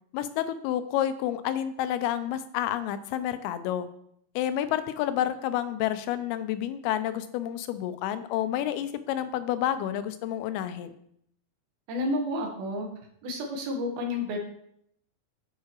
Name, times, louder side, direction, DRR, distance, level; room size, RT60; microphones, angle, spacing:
voice 1, 0.1-3.9 4.4-10.9, left 11 dB, 90° left, 11 dB, 2.5 m, -29 dB
voice 2, 11.9-12.9 13.2-14.4, left 1 dB, 75° right, 1 dB, 3.0 m, -30 dB
11.0 x 4.7 x 2.9 m, 0.71 s
omnidirectional pair, 4.4 m